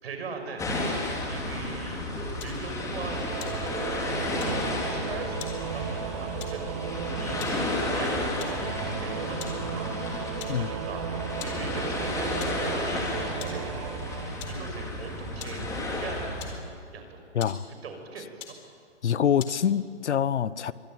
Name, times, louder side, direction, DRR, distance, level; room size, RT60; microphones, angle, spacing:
voice 1, 0.0-2.0 2.4-3.4 4.2-11.1 11.4-12.3 12.6-15.6 16.0-17.2 17.7-18.5, right 4 dB, 60° right, 5 dB, 6.4 m, -41 dB
sound 1, 0.6-16.6, left 2 dB, 10° left, 4.0 m, -32 dB
sound 2, 2.4-2.7 3.3-4.0 4.4-4.7 5.4-5.7 6.4-6.7 7.2-7.7 8.4-8.7 9.4-9.7 9.9-10.0 10.4-10.7 11.4-11.7 12.4-12.7 13.4-13.7 14.4-14.7 15.4-15.7 16.4-16.9 17.4-17.7 18.4-18.7 19.4-19.7, left 7 dB, 45° left, 4.4 m, -43 dB
Singing / Musical instrument, 2.9-15.4, right 9 dB, 30° right, 0.8 m, -36 dB
voice 2, 19.0-20.7, left 8 dB, 70° left, 18 dB, 1.0 m, -25 dB
25.0 x 21.5 x 9.3 m, 2.3 s
hypercardioid pair, 150°, 36 cm